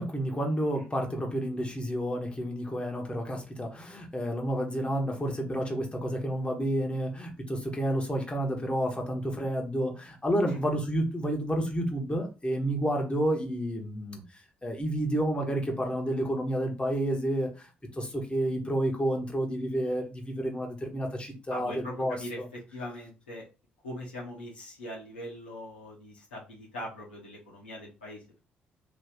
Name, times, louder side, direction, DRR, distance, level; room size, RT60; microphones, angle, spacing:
voice 1, 0.0-14.2 14.6-17.7 18.0-22.2, right 1 dB, 20° left, 1 dB, 1.2 m, -30 dB
voice 2, 21.5-22.4 22.7-23.4 23.8-28.4, left 1 dB, 85° left, -4 dB, 1.0 m, -41 dB
3.0 x 2.8 x 3.5 m, 0.30 s
figure-of-eight pair, 45°, 5 cm